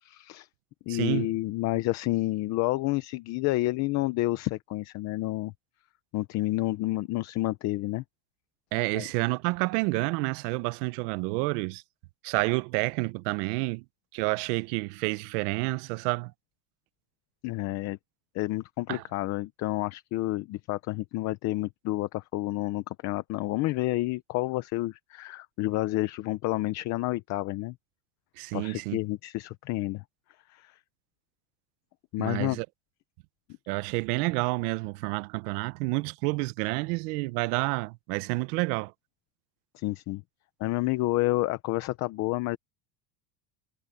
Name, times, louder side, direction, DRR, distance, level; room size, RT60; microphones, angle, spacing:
voice 1, 0.0-0.5 0.9-5.5 6.1-8.0 8.9-9.0 17.4-18.0 18.3-27.7 28.5-30.0 30.5-30.7 32.1-32.6 39.7-40.2 40.6-42.6, left 18 dB, 35° left, 0.6 m, -29 dB
voice 2, 0.9-1.3 8.7-11.8 12.2-13.8 14.1-16.3 18.9-19.0 28.4-29.0 32.2-32.7 33.7-38.9, right 24 dB, 70° right, 0.8 m, -29 dB
cardioid pair, 170°, 48 cm